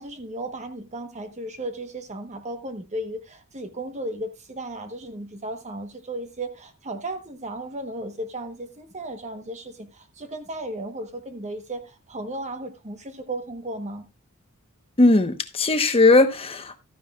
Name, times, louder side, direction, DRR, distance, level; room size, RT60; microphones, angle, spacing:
voice 1, 0.0-14.1, right 1 dB, 30° right, 1.1 m, -35 dB
voice 2, 15.0-16.8, left 2 dB, 25° left, 1.1 m, -18 dB
14.0 x 10.0 x 2.4 m
head